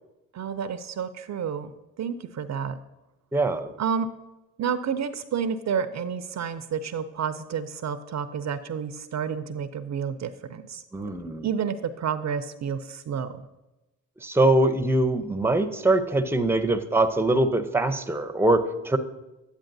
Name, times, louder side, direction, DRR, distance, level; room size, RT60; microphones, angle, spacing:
voice 1, 0.3-1.7 2.0-2.8 3.8-4.1 4.6-11.1 11.4-13.5, right 7 dB, 50° right, 12 dB, 0.5 m, -30 dB
voice 2, 3.3-3.7 10.9-11.5 14.2-19.0, right 2 dB, 5° right, 9 dB, 0.6 m, -23 dB
9.0 x 8.2 x 2.6 m, 1.0 s
supercardioid pair, 60°, 36 cm